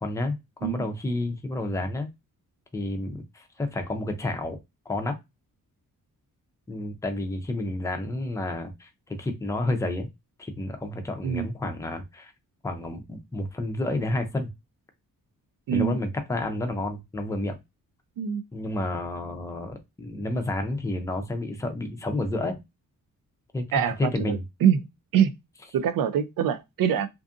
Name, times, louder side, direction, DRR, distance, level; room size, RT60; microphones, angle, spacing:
voice 1, 0.0-2.1 2.7-4.6 4.9-5.2 6.7-10.1 10.4-12.3 12.6-14.5 15.7-17.6 18.5-22.6 23.5-24.4, left 2 dB, 10° left, 0.4 m, -30 dB
voice 2, 15.7-16.0 18.2-18.4 23.7-24.8 25.1-25.3 25.7-27.1, right 8 dB, 80° right, 0.5 m, -24 dB
2.6 x 2.5 x 2.4 m
wide cardioid pair, 155°, 34 cm